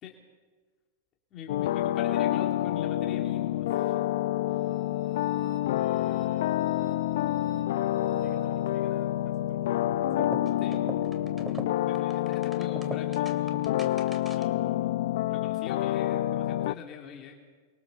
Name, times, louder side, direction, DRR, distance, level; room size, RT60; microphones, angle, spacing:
voice 1, 1.3-4.0 10.6-10.8 11.9-13.7 14.3-14.9 15.3-17.4, left 8 dB, 35° left, 1 dB, 3.4 m, -43 dB
sound 1, 1.5-16.7, left 13 dB, 70° left, 0.7 m, -28 dB
sound 2, 4.5-9.2, right 1 dB, 35° right, 7.7 m, -49 dB
voice 2, 5.8-6.6 8.1-10.3, left 5 dB, 10° left, 0 dB, 4.1 m, -53 dB
sound 3, 10.1-14.6, right 1 dB, 10° right, 2.7 m, -41 dB
29.0 x 23.0 x 7.1 m, 1.4 s
supercardioid pair, 140°, 0 cm